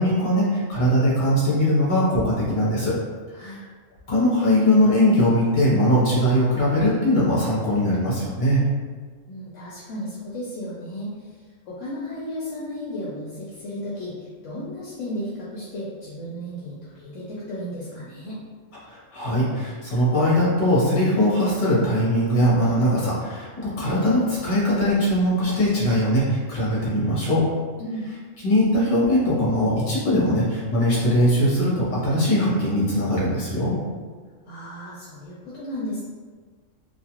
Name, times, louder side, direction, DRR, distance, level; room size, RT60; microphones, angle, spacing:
voice 1, 0.0-3.0 3.4-3.5 4.1-8.6 18.8-27.5 28.4-33.7, equal, 40° left, -7 dB, 1.0 m, -21 dB
voice 2, 9.3-18.4 27.8-28.1 34.4-36.0, equal, 70° left, -7 dB, 0.9 m, -34 dB
2.4 x 2.4 x 2.8 m, 1.5 s
omnidirectional pair, 1.4 m